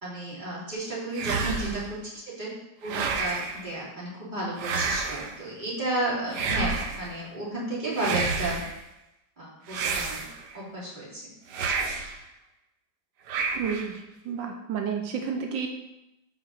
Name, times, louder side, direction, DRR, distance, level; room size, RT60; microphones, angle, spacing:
voice 1, 0.0-2.5 2.8-8.6 9.4-10.2 10.5-11.2, right 1 dB, 25° right, -8 dB, 2.9 m, -32 dB
sound 1, 1.1-1.9 2.8-3.6 4.6-5.4 6.3-7.1 7.9-8.8 9.7-10.6 11.5-12.2 13.3-14.0, right 4 dB, 70° right, 1.3 m, -30 dB
voice 2, 1.5-1.8 13.5-14.0 14.2-15.7, right 7 dB, 85° right, 3 dB, 1.5 m, -31 dB
5.7 x 4.5 x 6.3 m, 0.91 s
omnidirectional pair, 2.0 m